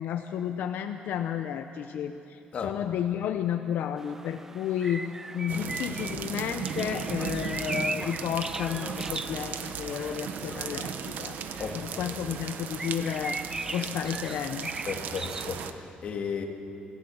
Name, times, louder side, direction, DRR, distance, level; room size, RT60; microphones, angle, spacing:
voice 1, 0.0-11.4 11.7-13.4 13.7-14.7, left 9 dB, 75° left, 7 dB, 0.7 m, -32 dB
sound 1, 4.0-15.5, right 2 dB, 15° right, 0.5 m, -40 dB
sound 2, 5.5-15.7, right 7 dB, 70° right, 1.1 m, -36 dB
sound 3, 6.6-11.7, left 2 dB, 15° left, 1.6 m, -47 dB
voice 2, 14.9-16.4, left 6 dB, 45° left, 2 dB, 2.2 m, -34 dB
26.0 x 16.0 x 7.1 m, 2.8 s
cardioid pair, 160°, 3 cm